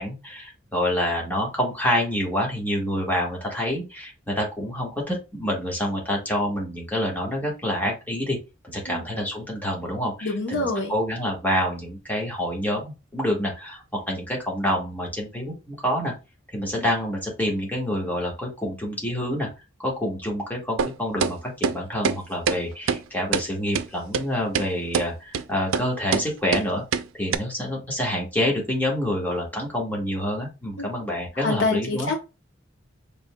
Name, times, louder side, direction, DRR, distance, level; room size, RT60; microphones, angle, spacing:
voice 1, 0.0-8.4 8.6-16.1 16.5-19.5 19.8-26.8 27.1-32.1, equal, 10° left, -2 dB, 1.3 m, -27 dB
voice 2, 10.2-10.9 30.8-30.9 31.4-32.2, left 3 dB, 65° left, 4 dB, 0.9 m, -26 dB
sound 1, 20.8-20.9 21.2-21.3 21.6-21.8 22.0-22.2 22.5-22.6 22.9-23.0 23.3-23.5 23.7-23.9 24.1-24.2 24.5-24.7 24.9-25.1 25.3-25.4 25.7-25.9 26.1-26.2 26.5-26.6 26.9-27.0 27.3-27.4, right 6 dB, 90° right, 0.4 m, -23 dB
5.1 x 3.5 x 2.2 m, 0.28 s
head